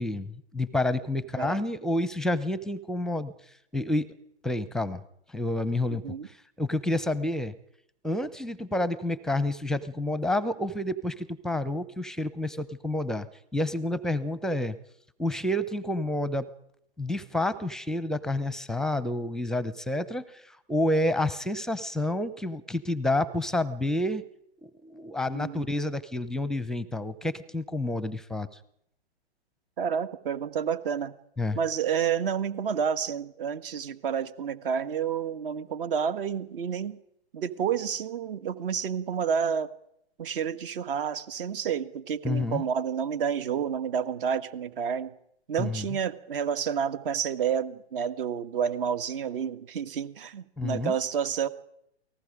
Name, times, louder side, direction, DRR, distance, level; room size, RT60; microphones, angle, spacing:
voice 1, 0.0-3.3 3.7-4.1 4.4-5.0 5.3-6.0 6.6-7.5 8.0-13.3 13.5-14.8 15.2-16.5 17.0-20.4 20.7-24.2 24.6-28.5 31.4-31.6 42.2-42.6 45.6-45.9 50.6-50.9, left 1 dB, ahead, 16 dB, 0.8 m, -29 dB
voice 2, 25.3-25.7 29.8-31.2 31.5-37.0 37.3-39.7 40.2-45.1 45.5-51.5, right 7 dB, 55° right, 12 dB, 1.8 m, -29 dB
29.0 x 19.0 x 5.1 m, 0.73 s
hypercardioid pair, 125°, 33 cm